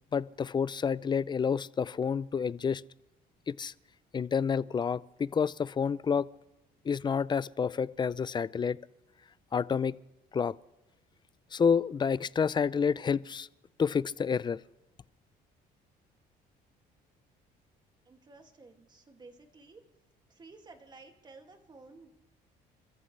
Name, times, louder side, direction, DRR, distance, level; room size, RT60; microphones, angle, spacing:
voice 1, 0.1-2.8 3.5-3.7 4.1-6.3 6.8-8.8 9.5-10.0 10.3-10.5 11.5-13.5 13.8-14.6, left 6 dB, 25° left, 0.4 m, -29 dB
voice 2, 18.1-19.8 20.3-22.1, right 3 dB, 25° right, 2.3 m, -53 dB
30.0 x 14.0 x 3.3 m
cardioid pair, 110°, 17 cm